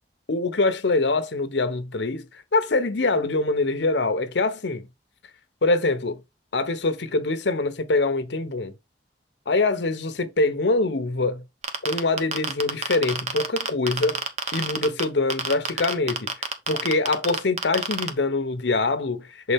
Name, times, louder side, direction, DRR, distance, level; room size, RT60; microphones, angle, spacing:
voice 1, 0.3-4.9 5.6-6.2 6.5-8.7 9.5-11.4 11.8-14.2 14.5-16.3 16.7-19.5, left 3 dB, 80° left, 0.9 m, -24 dB
sound 1, 11.6-15.0 15.3-18.1, right 5 dB, 40° right, 1.0 m, -26 dB
6.3 x 4.2 x 3.5 m
head